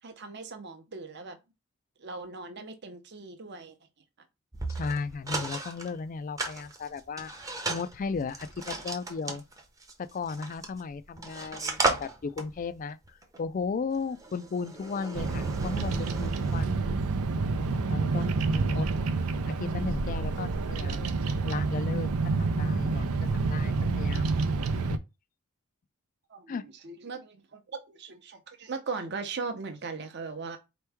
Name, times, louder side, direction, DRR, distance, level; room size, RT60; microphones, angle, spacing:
voice 1, 0.0-1.4 2.0-3.8 26.3-30.6, right 4 dB, 50° right, 0.7 m, -39 dB
sound 1, 4.5-5.9 6.4-10.8 11.2-16.6, right 2 dB, 15° right, 0.7 m, -35 dB
voice 2, 4.7-7.3 7.7-9.4 10.0-13.0 13.4-16.8 17.5-18.9 19.5-21.1 21.5-24.3 24.7-25.0 26.5-26.6, left 4 dB, 40° left, 0.3 m, -35 dB
Bird vocalization bird call bird song, 15.1-25.0, right 3 dB, 85° right, 0.5 m, -28 dB
4.4 x 3.0 x 3.4 m
head